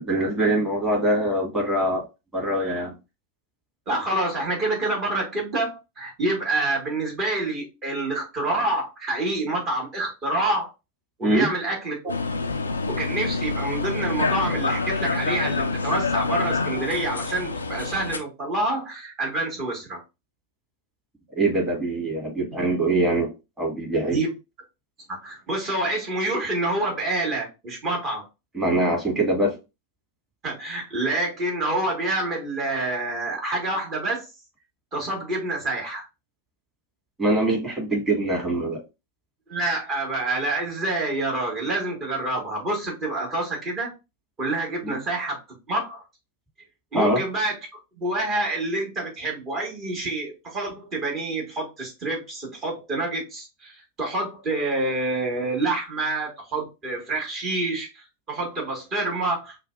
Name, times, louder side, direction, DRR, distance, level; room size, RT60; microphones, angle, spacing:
voice 1, 0.0-2.1 2.3-2.9 11.2-11.5 21.3-24.2 28.5-29.6 37.2-38.8 44.8-45.0 46.9-47.2, right 1 dB, 15° right, 2.2 m, -23 dB
voice 2, 3.9-10.7 11.2-12.0 12.9-20.0 24.1-24.3 25.1-28.3 30.4-34.2 34.9-36.0 39.5-43.9 44.4-45.4 45.7-46.0 46.9-47.5 48.0-59.6, right 2 dB, 30° right, 2.1 m, -27 dB
sound 1, 12.1-18.2, left 3 dB, 75° left, 0.4 m, -27 dB
5.5 x 2.3 x 2.6 m
figure-of-eight pair, 90°, 0 cm